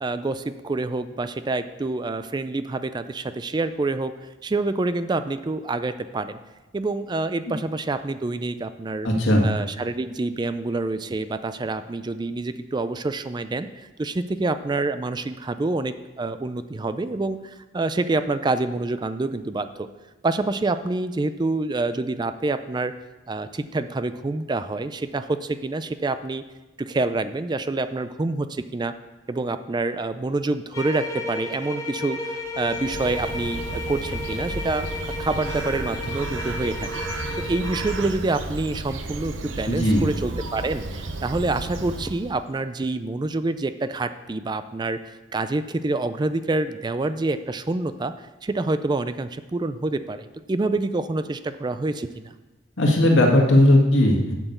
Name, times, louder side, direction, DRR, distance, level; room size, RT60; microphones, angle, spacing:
voice 1, 0.0-4.1 4.4-6.4 6.7-9.1 9.4-19.9 20.2-22.9 23.3-26.4 26.8-28.9 29.3-52.3, right 2 dB, 25° right, 11 dB, 0.4 m, -27 dB
voice 2, 9.0-9.4 39.7-40.0 52.8-54.3, left 1 dB, 85° left, 0 dB, 1.9 m, -17 dB
sound 1, 30.7-38.1, left 2 dB, 20° left, 1.3 m, -33 dB
Bird, 32.5-42.5, right 2 dB, 85° right, 0.9 m, -33 dB
7.9 x 6.1 x 7.9 m, 1.1 s
head